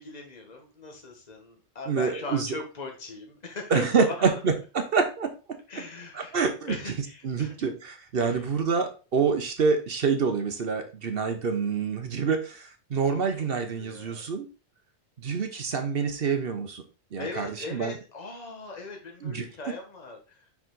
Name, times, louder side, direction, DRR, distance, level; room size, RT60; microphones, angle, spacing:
voice 1, 0.0-4.4 5.7-6.4 6.6-7.5 8.2-8.4 13.1-13.2 13.8-14.2 17.2-20.5, left 3 dB, 35° left, 2 dB, 1.4 m, -39 dB
voice 2, 1.9-2.5 3.7-5.3 6.1-6.9 7.2-14.5 15.2-16.8 17.1-17.9 19.2-19.5, right 5 dB, 55° right, 7 dB, 1.0 m, -27 dB
5.7 x 4.8 x 3.9 m, 0.32 s
omnidirectional pair, 1.2 m